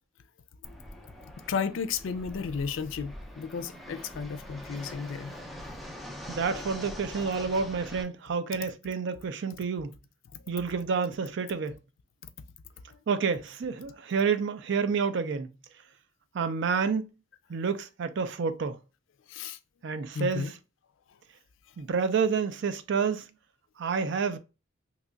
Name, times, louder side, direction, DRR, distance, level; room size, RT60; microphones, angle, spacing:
Fixed-wing aircraft airplane, 0.6-8.0, left 1 dB, ahead, 0.4 m, -43 dB
voice 1, 1.5-5.4 12.2-12.3 12.9-13.0 19.3-19.6 20.1-20.5, left 5 dB, 75° left, 0.4 m, -33 dB
voice 2, 6.3-9.9 10.5-11.8 13.1-15.5 16.3-17.1 17.5-18.8 19.8-20.5 21.8-23.3 23.8-24.4, right 5 dB, 60° right, 0.4 m, -29 dB
2.9 x 2.3 x 3.8 m
head